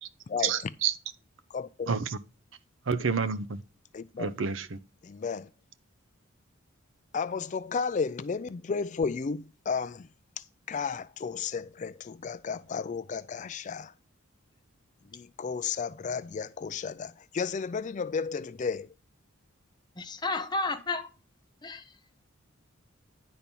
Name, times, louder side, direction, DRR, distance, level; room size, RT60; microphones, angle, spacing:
voice 1, 0.4-1.0 1.9-2.2 2.9-3.6 4.2-4.8, right 6 dB, 60° right, 0.6 m, -29 dB
voice 2, 1.5-1.9 3.9-4.3 5.0-5.5 7.1-10.1 10.7-13.9 15.1-18.9, left 5 dB, 35° left, 0.3 m, -33 dB
voice 3, 20.0-21.1 21.6-21.8, left 3 dB, 20° left, 0.9 m, -31 dB
10.0 x 4.4 x 5.2 m
head